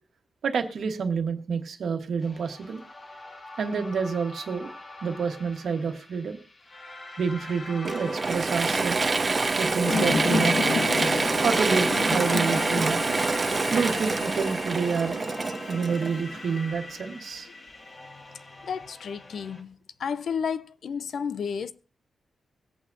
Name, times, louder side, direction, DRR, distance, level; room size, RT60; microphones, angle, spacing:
voice 1, 0.4-2.8 3.6-4.7 5.0-6.4 7.2-9.0 9.6-10.6 11.4-13.2 13.7-15.2 15.7-17.5, right 5 dB, 60° right, 1.4 m, -28 dB
sound 1, 2.2-19.6, left 2 dB, 30° left, 1.6 m, -42 dB
Mechanisms / Drill, 7.8-16.5, right 3 dB, 25° right, 0.5 m, -26 dB
sound 2, 9.8-16.8, left 4 dB, 75° left, 1.2 m, -32 dB
voice 2, 18.6-19.7 20.0-21.7, left 6 dB, 60° left, 0.5 m, -31 dB
22.0 x 8.5 x 2.7 m
wide cardioid pair, 175°, 0 cm